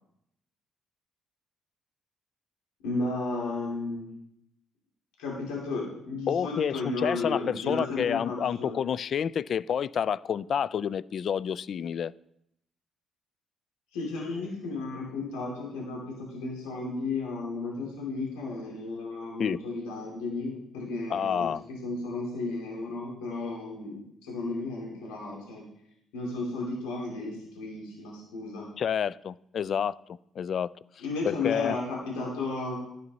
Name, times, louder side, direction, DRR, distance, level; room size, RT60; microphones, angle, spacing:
voice 1, 2.8-4.1 5.2-8.8 13.9-21.5 21.8-25.7 26.1-28.7 31.0-32.8, left 3 dB, 85° left, -3 dB, 2.7 m, -34 dB
voice 2, 6.3-12.1 19.4-19.6 21.1-21.6 28.8-30.0 30.4-30.7 31.2-31.8, left 8 dB, 60° left, 19 dB, 0.3 m, -29 dB
11.0 x 8.0 x 4.1 m, 0.77 s
supercardioid pair, 60°, 0 cm